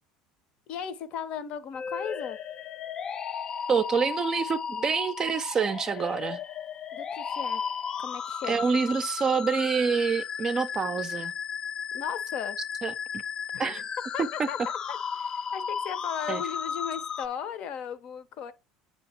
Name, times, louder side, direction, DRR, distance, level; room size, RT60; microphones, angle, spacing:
voice 1, 0.7-2.4 6.9-7.6 8.0-8.7 11.9-12.6 13.5-13.7 14.1-14.6 14.9-18.5, left 8 dB, 55° left, 0.7 m, -36 dB
sound 1, 1.7-17.3, left 7 dB, 35° left, 0.3 m, -35 dB
voice 2, 3.7-6.4 8.4-11.3 12.8-12.9 13.6-13.8 14.2-14.3 16.3-16.4, right 5 dB, 30° right, 0.5 m, -27 dB
7.8 x 2.9 x 4.3 m
supercardioid pair, 100°, 2 cm